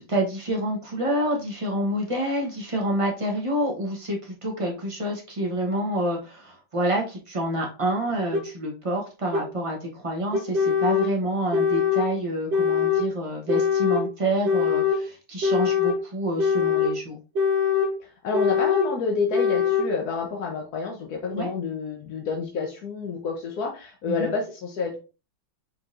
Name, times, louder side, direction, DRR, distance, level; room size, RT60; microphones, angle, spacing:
voice 1, 0.0-17.2 21.3-21.5 24.1-24.3, right 1 dB, 35° right, 0 dB, 0.5 m, -28 dB
sound 1, 8.3-8.4 9.3-9.4 10.3-11.1 11.5-12.1 12.5-13.1 13.5-14.0 14.4-15.0 15.4-16.0 16.4-16.9 17.3-17.9 18.3-18.9 19.3-19.9, left 6 dB, 60° right, 1.6 m, -22 dB
voice 2, 18.0-25.0, left 4 dB, 60° left, 1 dB, 1.1 m, -29 dB
4.7 x 4.2 x 2.5 m, 0.33 s
omnidirectional pair, 2.3 m